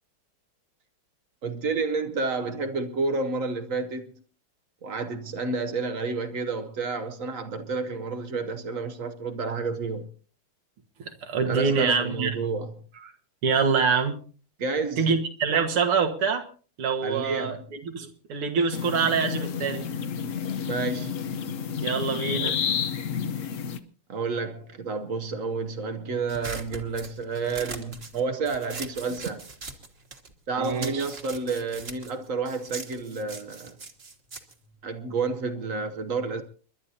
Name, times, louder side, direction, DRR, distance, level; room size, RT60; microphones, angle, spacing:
voice 1, 1.4-4.1 4.8-10.1 11.5-12.7 14.6-15.1 17.0-17.6 20.7-21.2 22.4-22.6 24.1-29.5 30.5-33.8 34.8-36.4, right 4 dB, 55° right, 0.9 m, -30 dB
voice 2, 11.0-12.4 13.4-14.1 15.0-16.5 16.8-19.9 21.8-22.6 30.6-31.1, right 5 dB, 80° right, 2.5 m, -25 dB
sound 1, 18.7-23.8, left 7 dB, 65° left, 0.8 m, -30 dB
sound 2, 26.3-30.3 30.6-35.4, right 3 dB, 35° right, 1.3 m, -41 dB
29.5 x 11.5 x 2.8 m
omnidirectional pair, 2.4 m